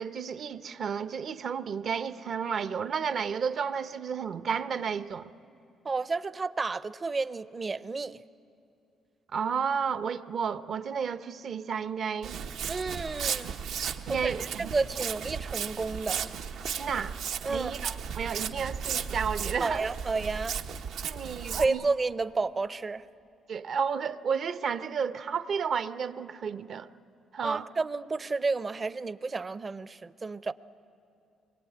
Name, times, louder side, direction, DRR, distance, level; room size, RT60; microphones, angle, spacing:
voice 1, 0.0-5.3 9.3-12.4 14.1-14.7 16.8-17.1 17.5-19.9 21.0-21.8 23.5-26.9 27.3-27.7, right 6 dB, 60° right, 0.9 m, -32 dB
voice 2, 5.8-8.2 12.7-13.6 14.1-16.3 17.4-17.7 19.6-20.6 21.4-23.0 27.4-30.5, right 3 dB, 30° right, 0.6 m, -31 dB
Walk footsteps, 12.2-21.6, right 7 dB, 80° right, 1.2 m, -35 dB
24.0 x 22.0 x 9.4 m
cardioid pair, 90°, 0 cm